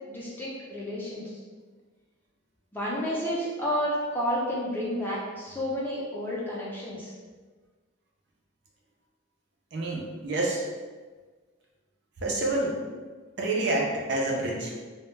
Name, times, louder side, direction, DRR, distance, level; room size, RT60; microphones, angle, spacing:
voice 1, 0.1-1.4 2.7-7.1, equal, 10° left, -6 dB, 0.4 m, -31 dB
voice 2, 9.7-10.6 12.2-12.8 13.4-14.7, right 2 dB, 55° right, -2 dB, 0.4 m, -28 dB
2.1 x 2.1 x 3.1 m, 1.4 s
head